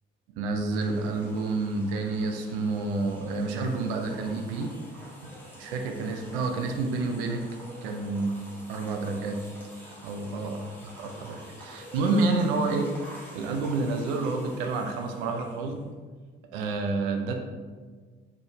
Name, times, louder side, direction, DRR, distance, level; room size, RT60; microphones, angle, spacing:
voice 1, 0.3-4.7 5.0-7.4 7.8-8.4 8.7-9.4 9.8-10.6 10.8-12.9 13.3-15.9 16.5-17.3, right 3 dB, 65° right, 4 dB, 0.5 m, -29 dB
sound 1, 0.7-15.9, equal, 5° left, 1.5 m, -47 dB
4.3 x 3.2 x 3.2 m, 1.5 s
figure-of-eight pair, 45°, 29 cm